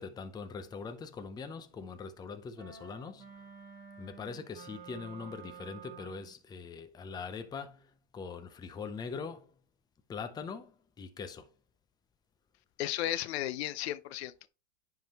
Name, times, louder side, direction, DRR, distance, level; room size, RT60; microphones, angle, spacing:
voice 1, 0.0-3.3 4.0-9.5 10.1-11.5, left 5 dB, 10° left, 0.6 m, -42 dB
sound 1, 2.6-6.4, right 6 dB, 45° right, 3.1 m, -50 dB
voice 2, 12.8-14.5, left 13 dB, 65° left, 0.6 m, -34 dB
10.0 x 3.8 x 2.9 m
supercardioid pair, 130°, 35 cm